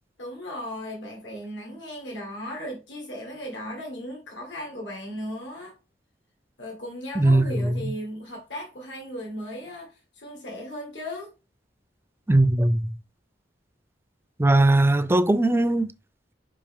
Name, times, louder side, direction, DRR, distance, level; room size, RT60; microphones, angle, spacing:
voice 1, 0.2-5.7 6.6-11.3, left 1 dB, 85° left, 2.0 m, -36 dB
voice 2, 7.2-7.7 12.3-12.8 14.4-15.9, right 1 dB, 15° right, 0.4 m, -19 dB
5.3 x 5.3 x 3.6 m
head